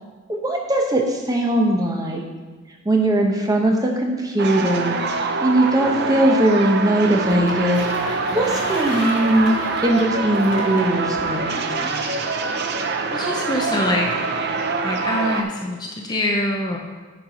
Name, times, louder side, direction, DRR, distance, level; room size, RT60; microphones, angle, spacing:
voice 1, 0.3-2.3 2.8-9.5 9.8-12.1, right 1 dB, 15° right, 1 dB, 0.8 m, -20 dB
sound 1, 4.4-15.4, right 4 dB, 45° right, 0.5 m, -25 dB
sound 2, 7.3-11.4, left 3 dB, 90° left, 1.4 m, -36 dB
voice 2, 13.1-14.1 14.8-16.8, left 1 dB, 20° left, 1 dB, 0.6 m, -24 dB
9.6 x 4.6 x 5.1 m, 1.4 s
head